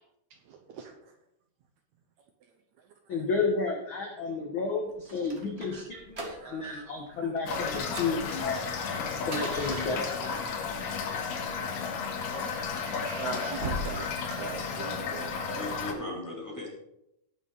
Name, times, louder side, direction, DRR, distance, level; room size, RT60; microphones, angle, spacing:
voice 1, 0.5-0.9 2.8-2.9 5.4-5.5 5.7-5.8 6.2-6.8 7.1-7.3 12.3-12.6 13.2-14.1 14.4-15.3, right 6 dB, 70° right, 4 dB, 2.0 m, -41 dB
voice 2, 3.1-8.7 9.2-10.1, left 4 dB, 60° left, 2 dB, 1.4 m, -31 dB
sound 1, 4.9-6.8 7.0-7.3 7.7-10.5 11.3-12.2 12.8-15.1, right 1 dB, 30° right, 1.2 m, -40 dB
Toilet flush / Fill (with liquid), 7.5-15.9, left 5 dB, 85° left, 3.2 m, -33 dB
voice 3, 15.5-16.7, left 1 dB, 5° left, -4 dB, 2.9 m, -37 dB
18.0 x 6.1 x 4.0 m, 0.82 s
omnidirectional pair, 3.8 m